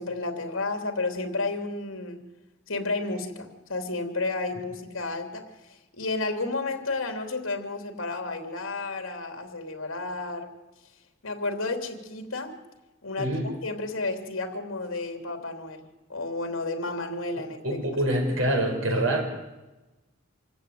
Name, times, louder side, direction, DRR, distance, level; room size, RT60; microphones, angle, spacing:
voice 1, 0.0-2.3 2.7-10.5 11.2-12.5 13.0-15.8 16.1-17.8, left 3 dB, 70° left, 6 dB, 3.2 m, -32 dB
voice 2, 17.6-19.2, right 1 dB, 70° right, 3 dB, 5.3 m, -25 dB
26.0 x 15.0 x 9.5 m, 1.1 s
head